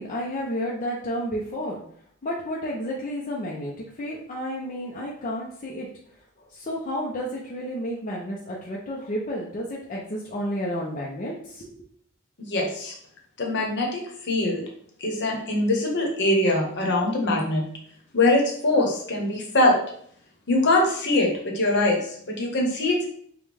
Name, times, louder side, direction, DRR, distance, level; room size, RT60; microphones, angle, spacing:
voice 1, 0.0-1.8 2.2-5.9 6.5-11.7, equal, 35° left, -3 dB, 0.6 m, -31 dB
voice 2, 12.4-12.9 13.4-14.7 15.0-17.6 18.1-19.8 20.5-23.1, left 2 dB, 55° left, 1 dB, 1.0 m, -23 dB
5.2 x 2.3 x 3.3 m, 0.63 s
head